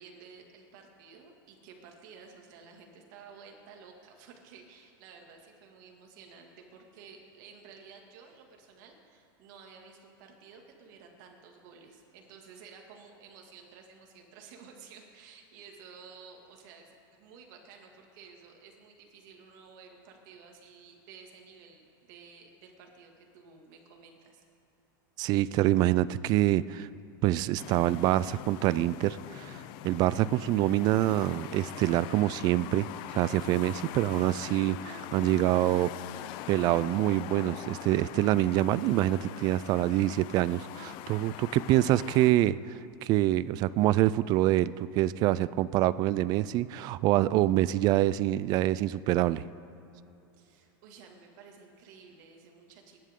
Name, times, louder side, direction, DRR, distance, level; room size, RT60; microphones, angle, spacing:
voice 1, 0.0-24.4 41.3-41.5 50.4-53.0, right 5 dB, 60° right, 2 dB, 2.2 m, -53 dB
voice 2, 25.2-26.9 27.2-32.9 33.1-35.9 36.5-49.5, right 15 dB, 35° right, 18 dB, 0.3 m, -26 dB
sound 1, 27.6-42.3, left 13 dB, 45° left, 0.5 m, -43 dB
20.5 x 11.0 x 3.7 m, 2.8 s
supercardioid pair, 150°, 12 cm